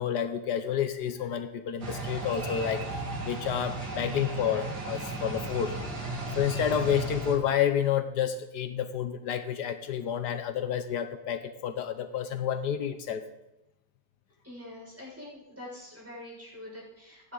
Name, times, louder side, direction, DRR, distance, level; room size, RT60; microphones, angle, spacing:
voice 1, 0.0-2.9 3.2-13.2, left 9 dB, 80° left, 9 dB, 1.4 m, -30 dB
sound 1, 1.8-7.4, right 2 dB, 75° right, 3.0 m, -35 dB
voice 2, 14.4-17.3, left 1 dB, 10° right, -5 dB, 5.9 m, -45 dB
26.5 x 9.9 x 3.9 m, 0.94 s
omnidirectional pair, 1.8 m